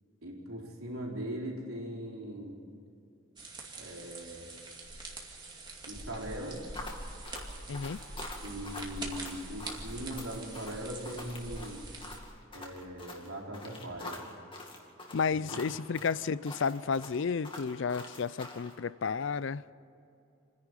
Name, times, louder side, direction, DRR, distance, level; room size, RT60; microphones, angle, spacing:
voice 1, 0.2-2.6 3.8-4.5 5.9-6.6 8.4-11.8 12.5-14.2 15.3-15.6, right 1 dB, 90° right, -1 dB, 4.2 m, -40 dB
sound 1, 3.4-12.2, right 2 dB, 20° right, 2.3 m, -44 dB
sound 2, 6.7-18.7, left 2 dB, 25° left, 2.2 m, -45 dB
voice 2, 7.7-8.0 15.1-19.6, left 5 dB, 60° left, 18 dB, 0.4 m, -32 dB
28.0 x 11.0 x 9.8 m, 2.6 s
head